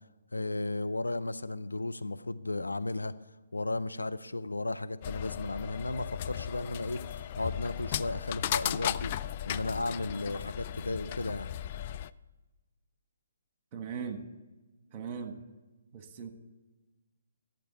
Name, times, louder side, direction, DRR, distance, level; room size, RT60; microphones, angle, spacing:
voice 1, 0.3-3.1 3.5-7.0 7.4-9.1 9.4-11.5, left 2 dB, 75° left, 10 dB, 0.6 m, -34 dB
sound 1, 5.0-12.1, left 11 dB, 35° left, 0.3 m, -36 dB
voice 2, 13.7-14.3 14.9-15.4 15.9-16.3, right 6 dB, 25° right, 7 dB, 1.5 m, -39 dB
12.0 x 7.5 x 9.3 m, 1.2 s
figure-of-eight pair, 135°, 0 cm